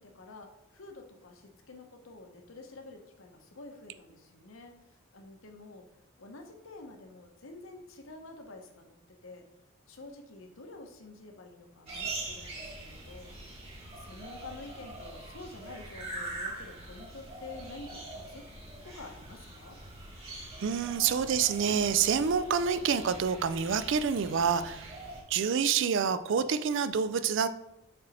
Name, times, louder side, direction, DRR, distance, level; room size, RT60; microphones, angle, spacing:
voice 1, 0.0-4.8 5.1-5.8 6.2-9.0 9.2-9.4 9.9-13.6 13.9-18.0 18.3-18.5 18.8-19.8, left 3 dB, 70° left, 4 dB, 0.9 m, -48 dB
sound 1, 11.9-25.2, right 2 dB, 30° right, 1.8 m, -43 dB
voice 2, 20.6-25.0 25.3-27.5, right 6 dB, 60° right, 13 dB, 0.4 m, -27 dB
6.7 x 4.1 x 4.1 m, 0.90 s
head